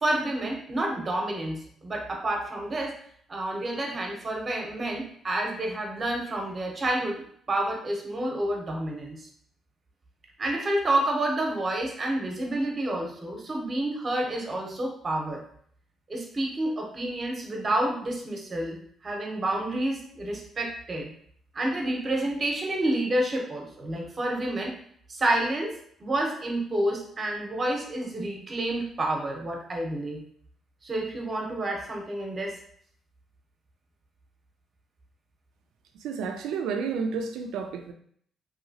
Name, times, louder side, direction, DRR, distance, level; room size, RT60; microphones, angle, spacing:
voice 1, 0.0-2.9 3.3-9.3 10.4-15.4 16.1-18.8 19.0-21.1 21.5-24.7 25.1-25.7 26.0-30.2 30.8-32.6, right 1 dB, 35° right, 0.8 m, -29 dB
voice 2, 36.0-37.9, right 5 dB, 90° right, 0.4 m, -31 dB
2.9 x 2.7 x 2.7 m
cardioid pair, 90°, 0 cm